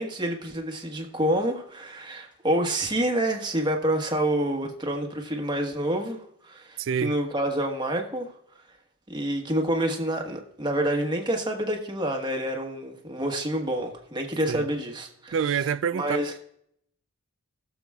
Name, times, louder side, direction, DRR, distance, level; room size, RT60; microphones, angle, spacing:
voice 1, 0.0-8.3 9.1-15.6 15.9-16.3, right 1 dB, 20° right, 1.4 m, -28 dB
voice 2, 6.8-7.1 14.5-14.7 15.3-16.2, right 7 dB, 60° right, 0.4 m, -26 dB
19.0 x 7.0 x 2.4 m
head